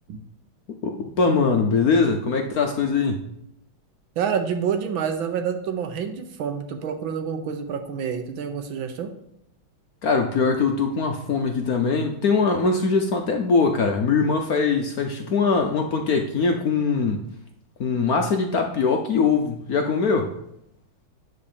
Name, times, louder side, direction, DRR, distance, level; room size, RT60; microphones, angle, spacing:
voice 1, 0.8-3.2 10.0-17.2 17.8-20.3, left 4 dB, 60° left, 4 dB, 1.0 m, -22 dB
voice 2, 4.2-9.1, right 7 dB, 70° right, 6 dB, 1.7 m, -28 dB
9.5 x 4.2 x 6.9 m, 0.78 s
omnidirectional pair, 2.3 m